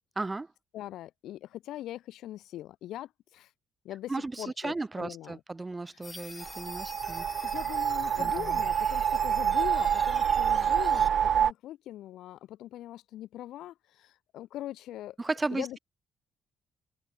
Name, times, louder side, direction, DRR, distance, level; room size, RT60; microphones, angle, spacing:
voice 1, 0.2-0.5 4.1-7.3 8.2-8.6 15.2-15.8, right 3 dB, 20° right, 0.8 m, -35 dB
voice 2, 0.7-3.5 3.8-4.1 4.4-5.4 7.4-15.2 15.5-15.8, left 13 dB, 85° left, 2.0 m, -41 dB
sound 1, 6.0-11.1, left 3 dB, 25° left, 2.3 m, -45 dB
sound 2, 6.4-11.5, right 9 dB, 60° right, 0.5 m, -27 dB
cardioid pair, 90°, 0 cm